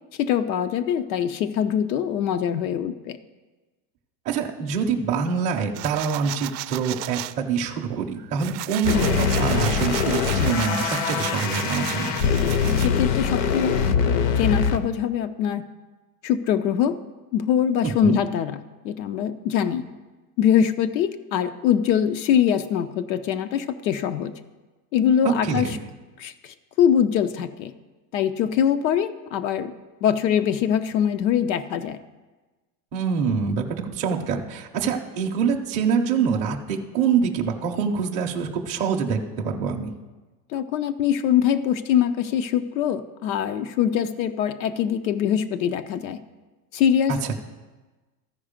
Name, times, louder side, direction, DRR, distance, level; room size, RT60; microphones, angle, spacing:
voice 1, 0.2-3.2 12.8-13.8 14.4-15.6 16.2-17.0 17.3-18.6 18.8-19.8 20.4-24.3 24.9-25.8 26.2-27.7 28.1-29.7 30.0-32.0 40.5-46.2 46.7-47.1, left 9 dB, 85° left, 9 dB, 0.7 m, -23 dB
voice 2, 4.2-12.2 17.8-18.2 25.2-25.8 32.9-39.9 47.1-47.3, right 6 dB, 15° right, 0 dB, 0.4 m, -25 dB
sound 1, 5.7-7.3 7.9-12.9, right 17 dB, 70° right, 0.5 m, -34 dB
sound 2, 8.8-14.8, left 6 dB, 45° left, 0.6 m, -23 dB
13.5 x 4.9 x 5.1 m, 1.2 s
supercardioid pair, 155°, 50 cm